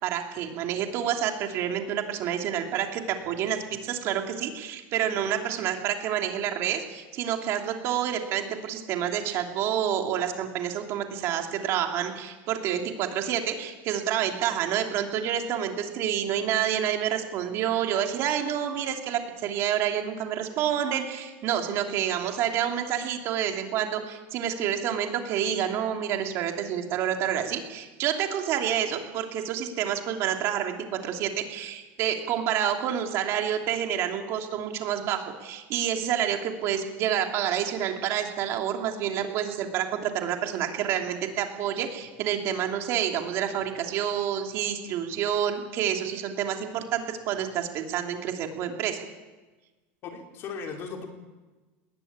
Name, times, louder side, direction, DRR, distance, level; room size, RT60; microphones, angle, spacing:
voice 1, 0.0-49.1, right 9 dB, 45° right, 3 dB, 3.0 m, -28 dB
voice 2, 50.0-51.1, left 5 dB, 40° left, 2 dB, 3.9 m, -37 dB
20.5 x 18.5 x 8.9 m, 1.2 s
supercardioid pair, 155°, 6 cm